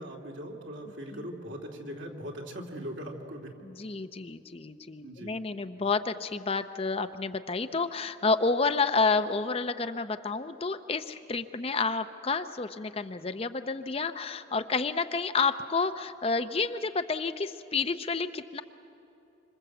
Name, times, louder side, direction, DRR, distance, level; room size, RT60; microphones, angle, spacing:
voice 1, 0.0-3.6 5.0-5.3, equal, 65° right, 1 dB, 2.9 m, -40 dB
voice 2, 3.6-18.6, left 4 dB, 30° left, 9 dB, 0.6 m, -30 dB
27.0 x 25.5 x 7.9 m, 2.9 s
head